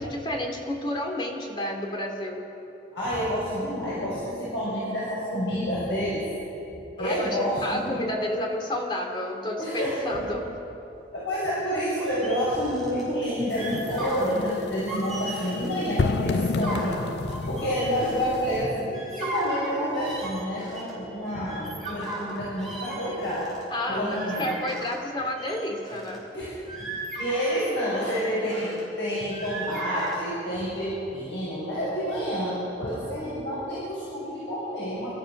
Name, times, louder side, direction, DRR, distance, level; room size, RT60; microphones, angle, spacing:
voice 1, 0.0-2.4 7.0-10.5 23.7-26.3, left 1 dB, 25° left, 1 dB, 2.6 m, -30 dB
voice 2, 2.9-6.2 6.7-8.0 9.6-10.1 11.1-23.5 23.9-24.6 26.3-26.6 27.2-35.1, equal, 85° left, -8 dB, 6.5 m, -29 dB
sound 1, 12.0-13.0 13.4-14.4 14.8-15.7 16.2-18.6 18.9-20.9 21.3-25.1 25.4-26.2 26.6-28.8 29.3-30.2, right 2 dB, ahead, 5.9 m, -37 dB
sound 2, 13.5-18.6, left 4 dB, 65° left, 0.4 m, -31 dB
28.5 x 14.0 x 6.6 m, 2.9 s
head